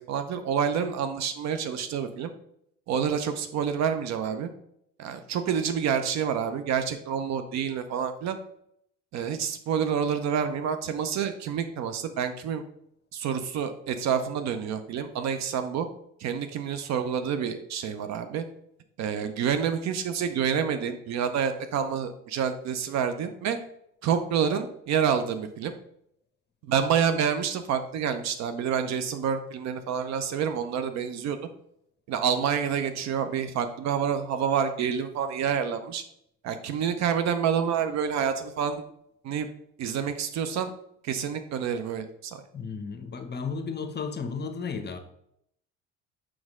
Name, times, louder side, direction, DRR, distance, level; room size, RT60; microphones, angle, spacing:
voice 1, 0.0-2.3 2.9-4.5 5.0-8.4 9.1-12.6 13.1-15.9 16.2-18.4 19.0-23.6 24.0-25.7 26.6-31.4 32.1-36.0 36.4-38.8 39.2-39.5 39.8-40.7 41.0-42.4, right 7 dB, 45° right, 9 dB, 0.7 m, -28 dB
voice 2, 42.5-45.0, left 5 dB, 25° left, 7 dB, 0.8 m, -33 dB
6.2 x 4.7 x 3.6 m, 0.73 s
figure-of-eight pair, 60°, 39 cm